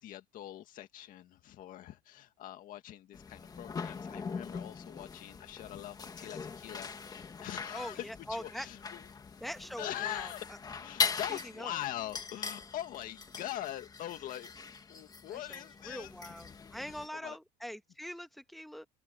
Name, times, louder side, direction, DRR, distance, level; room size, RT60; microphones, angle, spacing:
voice 1, 0.0-9.1 9.8-10.5 10.7-14.5 14.9-16.3 16.8-17.4, left 13 dB, 50° left, 1.9 m, -43 dB
sound 1, 3.1-17.1, left 5 dB, 20° left, 2.0 m, -41 dB
voice 2, 7.7-8.7 9.4-10.3 11.1-11.8 15.3-18.9, equal, ahead, 1.2 m, -43 dB
open air
cardioid pair, 140°, 18 cm